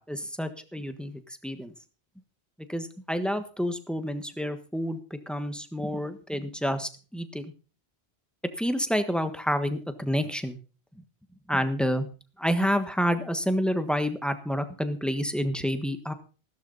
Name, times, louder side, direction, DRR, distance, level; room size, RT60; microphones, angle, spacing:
voice 1, 0.0-1.7 2.7-7.4 8.6-10.6 11.5-12.1 12.4-16.1, equal, ahead, 9 dB, 1.3 m, -29 dB
15.5 x 12.5 x 4.1 m, 0.36 s
omnidirectional pair, 1.1 m